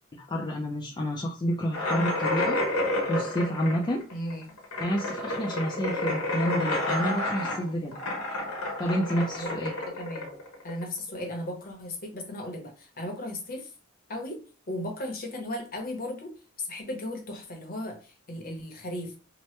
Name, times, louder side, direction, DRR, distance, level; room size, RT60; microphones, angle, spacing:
voice 1, 0.1-2.6 3.1-4.0 4.8-8.0 8.8-9.7, equal, 20° left, -2 dB, 0.4 m, -29 dB
sound 1, 1.7-11.1, left 1 dB, 90° left, 1.0 m, -30 dB
voice 2, 4.1-4.4 9.4-10.3 10.6-13.7 14.1-16.3 16.6-19.2, left 1 dB, 45° left, 2 dB, 0.8 m, -36 dB
2.9 x 2.1 x 3.1 m, 0.35 s
head